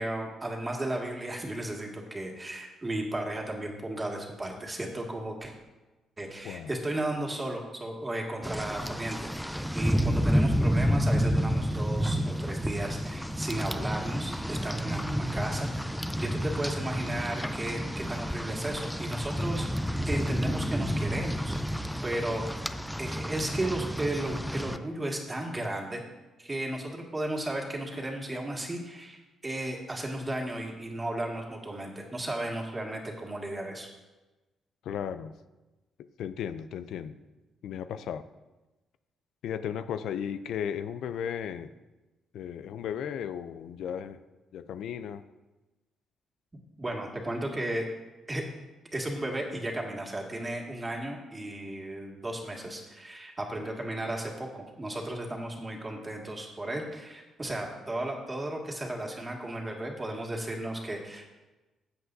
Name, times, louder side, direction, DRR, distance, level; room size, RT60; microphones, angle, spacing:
voice 1, 0.0-5.5 6.2-19.7 20.1-22.7 23.0-26.0 26.4-33.9 46.8-47.9 48.3-48.4 48.9-61.3, right 1 dB, 20° right, 0 dB, 1.9 m, -35 dB
Rain, 8.4-24.8, equal, ahead, 0.5 m, -30 dB
voice 2, 34.9-35.3 36.2-37.1 37.6-38.2 39.4-41.7 42.3-44.2 44.5-45.2, left 8 dB, 75° left, 12 dB, 0.4 m, -35 dB
13.5 x 8.0 x 2.7 m, 1.1 s
cardioid pair, 90°, 0 cm